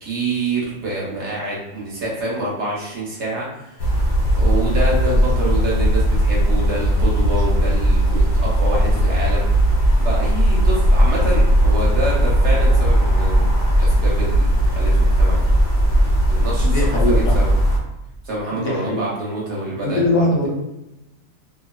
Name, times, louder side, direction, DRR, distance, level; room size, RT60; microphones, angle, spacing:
voice 1, 0.0-4.1 4.4-9.4 10.0-13.5 13.8-15.4 16.3-17.6 18.2-20.2, right 2 dB, 60° right, -4 dB, 1.1 m, -26 dB
sound 1, 3.8-17.8, equal, 60° left, 1.0 m, -17 dB
voice 2, 16.6-17.3 18.5-19.0 19.8-20.5, left 1 dB, 85° left, -2 dB, 1.2 m, -21 dB
2.6 x 2.3 x 2.2 m, 0.95 s
omnidirectional pair, 1.4 m